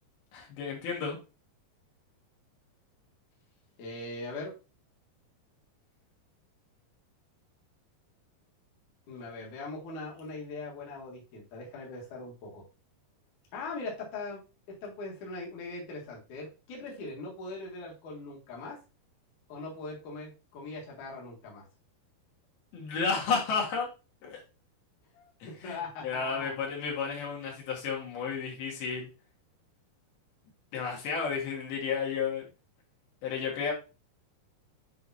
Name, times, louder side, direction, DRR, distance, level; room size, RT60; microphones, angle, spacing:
voice 1, 0.3-1.2 22.7-23.9 24.2-24.4 25.4-25.8 26.0-29.1 30.7-32.4 33.2-33.7, left 5 dB, 75° left, -2 dB, 3.7 m, -32 dB
voice 2, 3.8-4.5 9.1-12.6 13.5-18.8 19.5-21.7 25.1-26.5, left 3 dB, 55° left, -3 dB, 2.7 m, -41 dB
8.2 x 4.7 x 2.8 m, 0.30 s
omnidirectional pair, 4.5 m